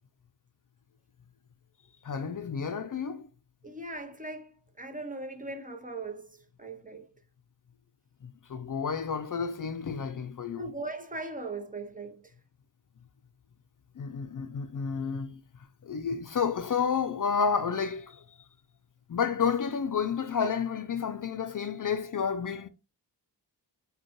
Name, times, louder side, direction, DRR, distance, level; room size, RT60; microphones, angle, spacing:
voice 1, 2.0-3.3 8.2-10.7 14.0-15.4 15.8-18.2 19.1-22.7, left 6 dB, 50° left, 0.4 m, -30 dB
voice 2, 3.6-7.1 10.6-12.3, right 3 dB, 20° right, 0.7 m, -39 dB
5.1 x 2.2 x 2.9 m
wide cardioid pair, 60°, 43 cm